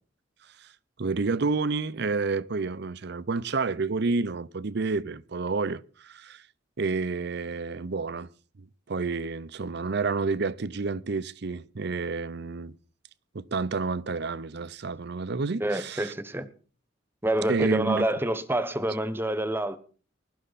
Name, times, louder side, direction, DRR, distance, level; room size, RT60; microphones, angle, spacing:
voice 1, 1.0-6.4 6.8-8.3 8.6-12.7 13.3-16.1 17.5-18.1, right 4 dB, 60° right, 0.7 m, -29 dB
voice 2, 15.6-16.5 17.2-19.8, right 1 dB, 10° right, 1.1 m, -27 dB
21.0 x 12.5 x 4.1 m
head